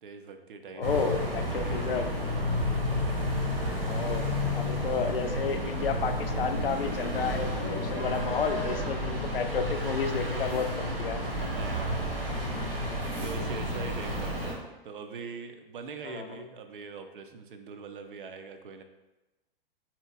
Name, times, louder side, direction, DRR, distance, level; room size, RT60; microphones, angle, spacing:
voice 1, 0.0-0.9 1.1-2.8 3.0-3.1 11.2-12.3 13.1-18.8, right 4 dB, 60° right, 7 dB, 0.4 m, -43 dB
voice 2, 0.7-2.1 3.8-11.2 16.0-16.4, left 5 dB, 70° left, 7 dB, 0.4 m, -32 dB
sound 1, 0.8-14.5, equal, 85° right, 0.9 m, -31 dB
sound 2, 4.9-11.8, left 3 dB, 15° left, 0.4 m, -42 dB
4.1 x 2.8 x 2.3 m, 1.1 s
figure-of-eight pair, 115°, 29 cm